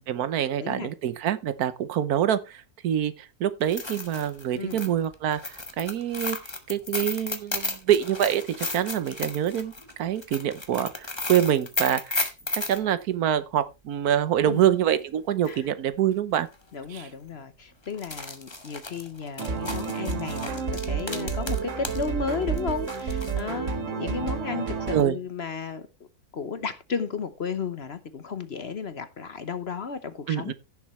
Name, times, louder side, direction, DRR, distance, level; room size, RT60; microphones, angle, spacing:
voice 1, 0.1-6.4 6.7-9.7 10.0-12.2 12.5-16.5 16.9-17.1 24.9-25.2 30.3-30.5, right 10 dB, 75° right, 1.3 m, -25 dB
voice 2, 0.6-0.9 4.5-4.9 14.4-14.7 15.5-15.7 16.7-25.9 26.3-30.5, left 5 dB, 50° left, 1.0 m, -33 dB
sound 1, 3.6-12.8 15.0-15.1 15.4-15.5 16.3-16.5 16.9-17.0 17.9-22.1 22.3-23.4, left 2 dB, 20° left, 1.3 m, -34 dB
sound 2, 19.4-25.0, right 5 dB, 55° right, 1.5 m, -30 dB
16.0 x 7.1 x 3.2 m
omnidirectional pair, 1.6 m